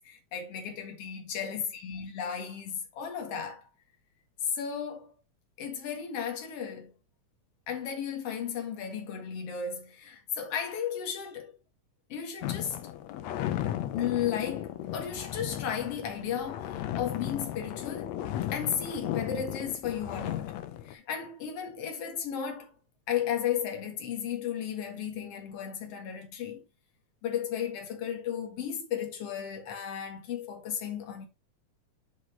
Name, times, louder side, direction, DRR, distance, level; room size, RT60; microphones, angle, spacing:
voice 1, 0.0-3.6 4.4-5.1 5.6-6.9 7.7-11.5 12.1-12.8 13.4-18.2 18.5-20.5 20.8-22.7 23.1-26.6 27.2-31.3, left 8 dB, 55° left, 2.7 m, -34 dB
sound 1, 12.4-20.9, left 12 dB, 75° left, 1.9 m, -35 dB
7.9 x 5.9 x 2.9 m
omnidirectional pair, 3.5 m